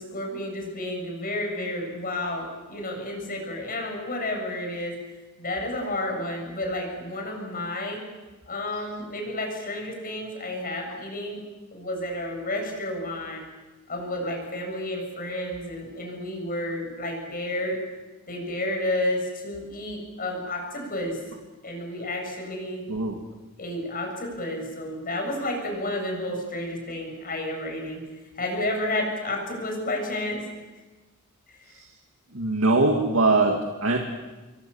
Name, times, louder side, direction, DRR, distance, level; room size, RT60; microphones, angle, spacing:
voice 1, 0.0-4.9 5.4-8.0 8.5-11.4 11.7-13.4 13.9-17.7 18.3-21.2 21.6-22.8 23.6-28.0 28.4-30.4, left 1 dB, 40° left, 1 dB, 8.0 m, -31 dB
voice 2, 32.3-34.0, right 2 dB, 65° right, 2 dB, 2.4 m, -22 dB
28.5 x 23.0 x 7.3 m, 1.2 s
head